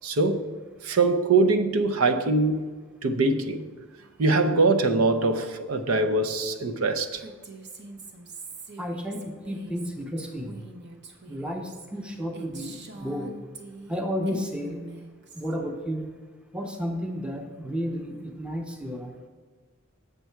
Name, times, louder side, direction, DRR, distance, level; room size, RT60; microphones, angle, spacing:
voice 1, 0.0-0.5 0.8-2.7 3.0-3.7 4.2-7.2, right 3 dB, 90° right, 0.6 m, -23 dB
Female speech woman speaking, 7.2-14.0 14.3-15.5, right 3 dB, 55° right, 0.8 m, -44 dB
voice 2, 8.8-10.6 11.3-13.4 13.9-14.8 15.3-16.1 16.5-19.1, equal, 5° right, 0.6 m, -32 dB
7.3 x 6.8 x 4.5 m
head